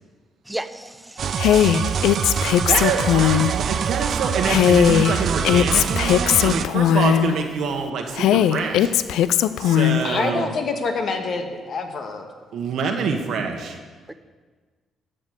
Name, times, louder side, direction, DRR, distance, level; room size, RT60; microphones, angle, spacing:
voice 1, 0.4-2.1 14.1-14.2, right 1 dB, 10° right, 11 dB, 0.7 m, -35 dB
sound 1, 1.2-6.6, right 7 dB, 55° right, 0.4 m, -25 dB
Female speech woman speaking, 1.4-3.5 4.4-7.3 8.2-10.1, left 11 dB, 85° left, 0.4 m, -18 dB
voice 2, 2.6-9.0 9.6-10.5 12.5-13.8, right 5 dB, 75° right, 3 dB, 1.3 m, -26 dB
voice 3, 10.0-12.3, left 4 dB, 55° left, 5 dB, 1.5 m, -26 dB
12.5 x 5.2 x 8.0 m, 1.4 s
cardioid pair, 90°, 0 cm